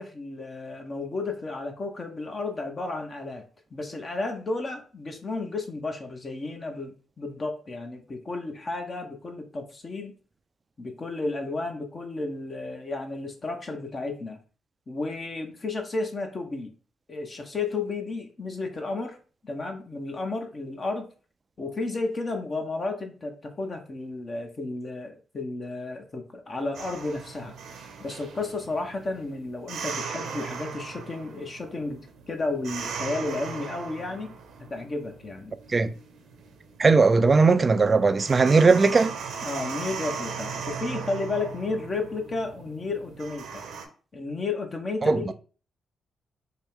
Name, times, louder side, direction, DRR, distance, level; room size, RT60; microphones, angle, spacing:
voice 1, 0.0-3.4 3.7-10.1 10.8-14.4 14.9-16.7 17.1-19.2 19.4-21.1 21.6-27.5 28.0-34.3 34.7-35.5 39.4-43.7 44.1-45.3, left 3 dB, 40° left, 0.8 m, -32 dB
sound 1, 26.7-43.8, right 6 dB, 80° right, 0.8 m, -38 dB
voice 2, 36.8-39.1 45.0-45.2, right 4 dB, 40° right, 0.4 m, -18 dB
4.1 x 2.1 x 3.6 m
supercardioid pair, 60°, 0 cm